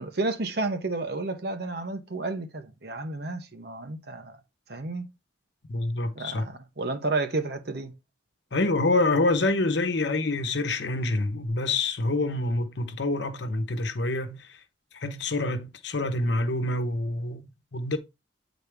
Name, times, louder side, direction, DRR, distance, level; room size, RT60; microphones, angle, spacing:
voice 1, 0.0-4.4 4.7-5.0 6.2-7.9, right 3 dB, 55° right, 0.9 m, -31 dB
voice 2, 5.7-6.5 8.5-14.6 14.9-18.0, left 2 dB, 65° left, 1.0 m, -27 dB
8.4 x 4.2 x 3.4 m
head